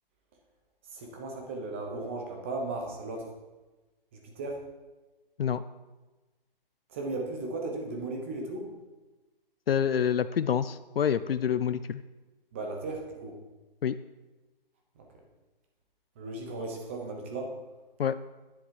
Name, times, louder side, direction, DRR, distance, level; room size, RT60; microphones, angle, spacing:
voice 1, 0.9-3.3 4.1-4.6 6.9-8.7 12.5-13.3 15.0-15.1 16.2-17.5, right 2 dB, 15° right, 2 dB, 0.8 m, -36 dB
voice 2, 9.7-12.0 13.8-13.9 18.0-18.1, left 8 dB, 80° left, 13 dB, 0.5 m, -27 dB
10.0 x 7.0 x 4.7 m, 1.2 s
hypercardioid pair, 165°, 29 cm